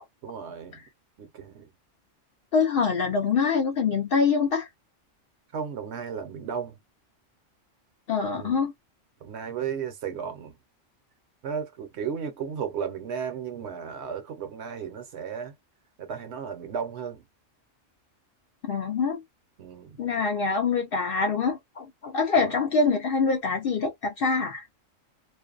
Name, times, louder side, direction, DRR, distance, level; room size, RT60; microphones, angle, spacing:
voice 1, 0.2-0.8 1.2-1.7 5.5-6.8 8.4-8.6 9.2-10.6 11.4-15.5 16.0-17.3 19.6-20.0 22.4-22.6, right 7 dB, 65° right, 0.9 m, -34 dB
voice 2, 2.5-4.7 8.1-8.7 18.7-19.2 20.0-24.6, left 5 dB, 60° left, 0.6 m, -25 dB
2.5 x 2.1 x 2.3 m
omnidirectional pair, 1.3 m